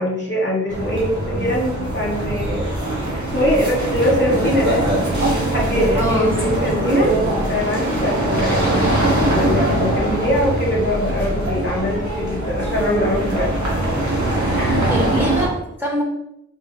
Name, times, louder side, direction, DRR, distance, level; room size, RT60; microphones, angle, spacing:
voice 1, 0.0-2.7 3.3-4.8 5.5-7.1 7.5-13.5 14.5-14.8, left 1 dB, 40° left, -4 dB, 1.3 m, -22 dB
sound 1, 0.7-15.5, right 1 dB, 80° right, 1.2 m, -21 dB
voice 2, 5.9-6.7 14.9-16.0, equal, 5° right, -4 dB, 1.4 m, -24 dB
4.0 x 2.7 x 4.0 m, 0.80 s
wide cardioid pair, 45°, 29 cm